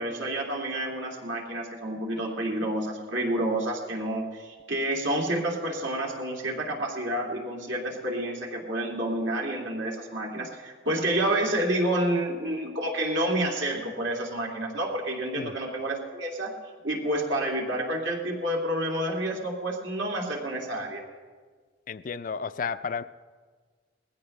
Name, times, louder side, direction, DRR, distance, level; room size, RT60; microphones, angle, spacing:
voice 1, 0.0-16.5 16.8-21.0, right 1 dB, 85° right, -1 dB, 2.5 m, -29 dB
voice 2, 21.9-23.0, left 6 dB, 45° left, 13 dB, 0.3 m, -32 dB
20.5 x 15.5 x 3.2 m, 1.5 s
head